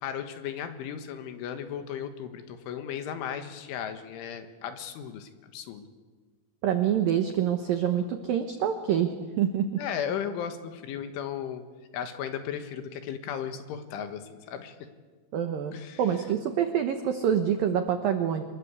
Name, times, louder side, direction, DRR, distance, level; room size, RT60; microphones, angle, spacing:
voice 1, 0.0-5.9 9.8-11.6 11.9-14.8 15.7-16.0, left 8 dB, 75° left, 8 dB, 3.9 m, -35 dB
voice 2, 6.6-9.8 15.3-15.7 16.0-18.4, right 9 dB, 85° right, 7 dB, 2.0 m, -26 dB
26.5 x 21.5 x 8.3 m, 1.3 s
omnidirectional pair, 5.9 m